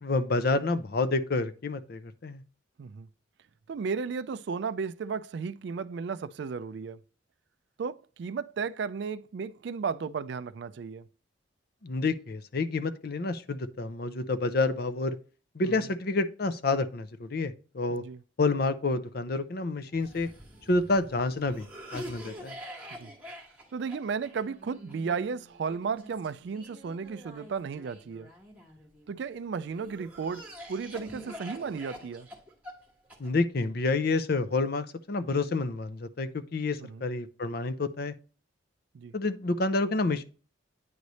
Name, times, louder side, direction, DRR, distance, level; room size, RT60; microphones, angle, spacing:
voice 1, 0.0-2.4 11.8-15.2 15.5-18.0 18.4-20.3 20.7-21.7 21.9-22.6 33.2-38.1 39.1-40.2, left 3 dB, 50° left, 0.6 m, -29 dB
voice 2, 3.7-7.0 7.8-11.0 15.6-15.9 17.9-18.2 23.0-23.1 23.7-28.3 29.1-32.3 36.8-37.0 38.9-39.1, right 5 dB, 55° right, 0.3 m, -34 dB
Cough, 19.9-29.1 29.7-33.6, equal, 10° right, 1.2 m, -46 dB
9.4 x 3.2 x 4.0 m
head